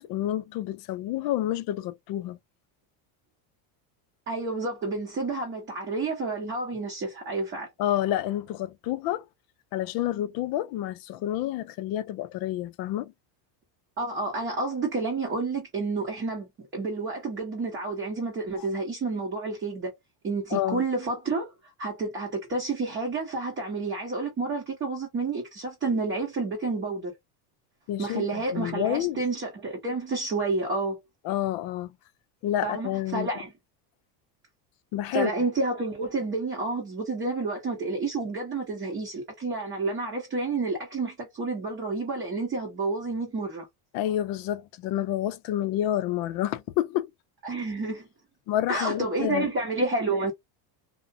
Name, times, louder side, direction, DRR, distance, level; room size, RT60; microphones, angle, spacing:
voice 1, 0.0-2.4 7.8-9.2 9.7-13.1 18.6-18.7 20.5-20.8 27.9-29.2 31.2-31.9 32.4-33.3 34.9-35.3 43.9-47.1 48.5-49.5, left 13 dB, 50° left, 0.5 m, -29 dB
voice 2, 4.3-7.7 14.0-19.9 20.2-21.5 21.8-27.1 28.0-31.0 32.6-33.5 35.1-43.6 47.4-48.1 48.7-50.3, right 3 dB, 25° right, 0.9 m, -30 dB
2.5 x 2.1 x 2.6 m
cardioid pair, 135°, 47 cm